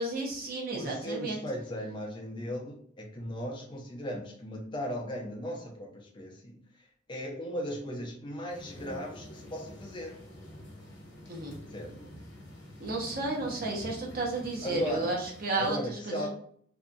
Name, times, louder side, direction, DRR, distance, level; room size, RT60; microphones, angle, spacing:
voice 1, 0.0-1.4 11.3-11.5 12.8-16.3, right 2 dB, 50° right, -1 dB, 0.7 m, -32 dB
voice 2, 0.7-10.2 11.7-12.1 14.6-15.2 15.6-16.3, equal, 25° left, 0 dB, 0.5 m, -37 dB
sound 1, 8.5-15.7, equal, 60° left, 0.8 m, -47 dB
2.7 x 2.3 x 2.5 m, 0.62 s
head